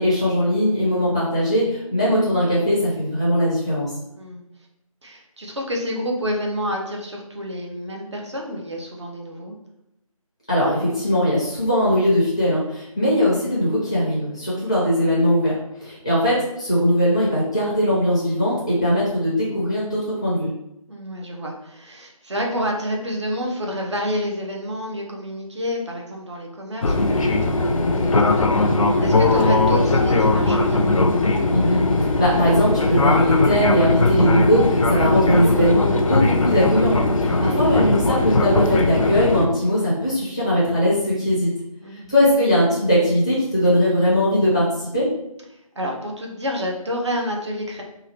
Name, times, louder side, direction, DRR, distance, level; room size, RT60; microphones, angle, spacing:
voice 1, 0.0-3.9 10.5-20.5 31.5-41.5 42.1-45.1, equal, 10° left, -8 dB, 0.5 m, -20 dB
voice 2, 5.0-9.5 14.4-14.7 20.9-30.9 37.3-37.6 41.8-42.1 45.7-47.8, equal, 50° right, 0 dB, 0.7 m, -29 dB
Fixed-wing aircraft airplane, 26.8-39.5, left 2 dB, 65° left, 0.4 m, -19 dB
3.1 x 2.4 x 2.9 m, 0.83 s
figure-of-eight pair, 165°, 19 cm